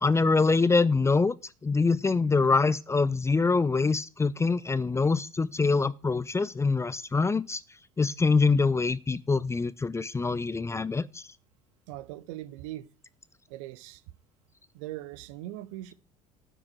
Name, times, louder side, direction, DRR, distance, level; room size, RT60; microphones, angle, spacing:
voice 1, 0.0-1.3 1.6-7.6 8.0-11.3, left 4 dB, 15° left, 0.6 m, -24 dB
voice 2, 11.9-12.9 13.5-14.0 14.7-15.9, right 15 dB, 65° right, 0.8 m, -40 dB
10.5 x 6.2 x 6.3 m
figure-of-eight pair, 60°, 18 cm